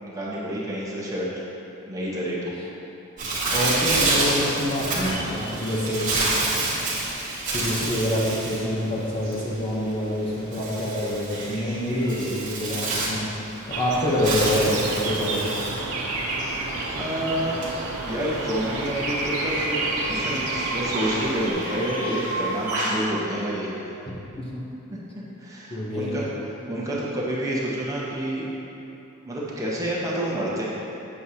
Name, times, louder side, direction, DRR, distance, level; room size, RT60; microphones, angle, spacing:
voice 1, 0.0-1.3 1.9-2.5 16.9-17.6 18.0-23.9 24.9-25.0 25.4-26.2 26.7-28.5 29.2-30.7, right 1 dB, 15° right, -7 dB, 1.0 m, -28 dB
Bird, 3.2-23.1, right 2 dB, 35° right, 1.3 m, -29 dB
voice 2, 3.5-6.2 7.5-13.3 13.7-15.6 24.5-24.6 25.7-26.1, equal, 25° left, -5 dB, 0.8 m, -26 dB
sound 1, 13.7-21.5, right 2 dB, 90° right, 0.7 m, -30 dB
7.6 x 6.4 x 2.8 m, 2.9 s
head